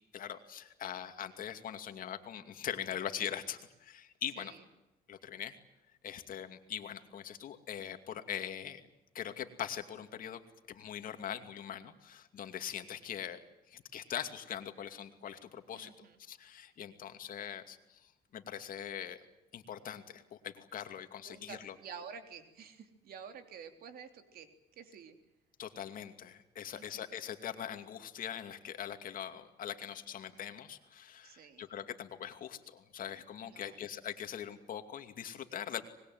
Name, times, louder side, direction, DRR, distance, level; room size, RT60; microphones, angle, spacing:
voice 1, 0.1-4.5 5.1-5.5 6.0-8.8 9.1-10.4 10.7-13.4 13.7-19.2 19.5-21.8 25.6-35.8, left 9 dB, 55° left, 7 dB, 2.6 m, -42 dB
voice 2, 15.7-16.2 21.2-25.2 26.7-27.1 31.2-31.7 33.4-33.8, right 6 dB, 65° right, 7 dB, 3.5 m, -50 dB
25.0 x 21.5 x 9.5 m, 0.95 s
cardioid pair, 110°, 17 cm